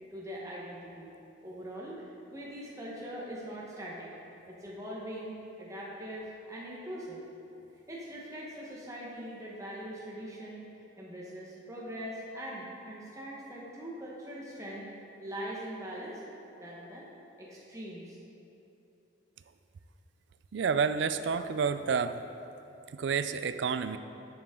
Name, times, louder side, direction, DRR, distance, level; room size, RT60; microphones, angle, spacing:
voice 1, 0.1-1.1 1.4-4.1 4.5-7.2 7.9-10.7 11.0-14.9 15.2-16.2 16.6-17.1 17.4-18.2, equal, 15° right, -5 dB, 1.0 m, -42 dB
voice 2, 20.5-22.2 22.9-24.0, right 6 dB, 60° right, 11 dB, 0.3 m, -29 dB
10.0 x 7.0 x 3.7 m, 2.9 s
head